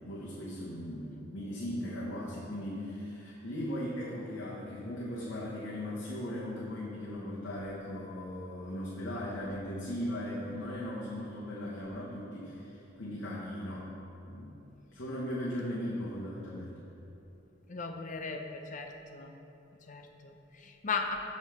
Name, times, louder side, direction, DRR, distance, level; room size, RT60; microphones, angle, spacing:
voice 1, 0.0-13.9 14.3-14.5 14.9-16.7, left 1 dB, 85° left, -6 dB, 1.1 m, -38 dB
voice 2, 17.7-19.3 19.9-21.2, left 4 dB, 40° left, 4 dB, 0.6 m, -37 dB
6.3 x 5.3 x 6.5 m, 2.9 s
head